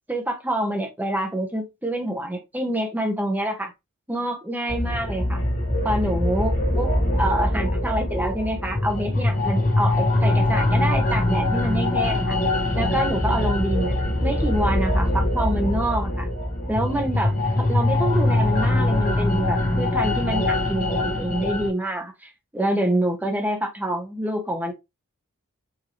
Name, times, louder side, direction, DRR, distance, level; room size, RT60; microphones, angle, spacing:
voice 1, 0.1-3.7 4.1-5.4 5.8-6.9 7.2-12.4 12.7-13.9 14.2-16.3 16.7-24.7, right 1 dB, 10° right, 1.0 m, -26 dB
sound 1, 4.7-21.7, left 1 dB, 45° left, 1.9 m, -23 dB
4.8 x 2.9 x 3.1 m
head